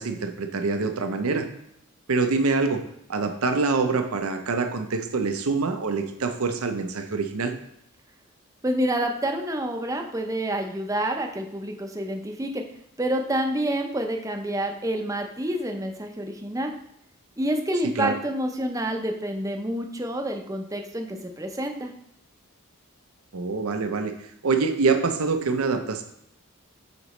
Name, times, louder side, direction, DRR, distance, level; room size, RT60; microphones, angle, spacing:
voice 1, 0.0-1.5 2.1-2.8 3.1-7.5 18.0-18.1 23.3-24.1 24.4-26.0, right 4 dB, 80° right, 6 dB, 0.7 m, -25 dB
voice 2, 8.6-12.6 13.0-16.7 17.4-21.9, right 1 dB, 15° right, 4 dB, 0.6 m, -28 dB
8.3 x 3.9 x 3.1 m, 0.75 s
head